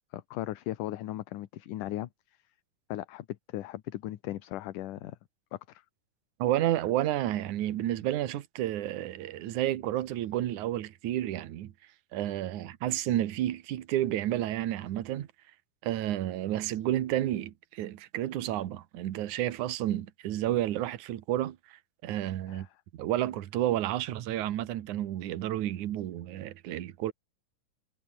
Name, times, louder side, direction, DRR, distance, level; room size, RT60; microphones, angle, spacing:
voice 1, 0.1-2.1 2.9-5.2 5.5-5.8 22.5-22.7, left 14 dB, 75° left, 2.6 m, -37 dB
voice 2, 6.4-11.7 12.1-15.3 15.8-21.6 22.0-22.7 22.9-27.1, right 13 dB, 70° right, 2.7 m, -31 dB
omnidirectional pair, 3.7 m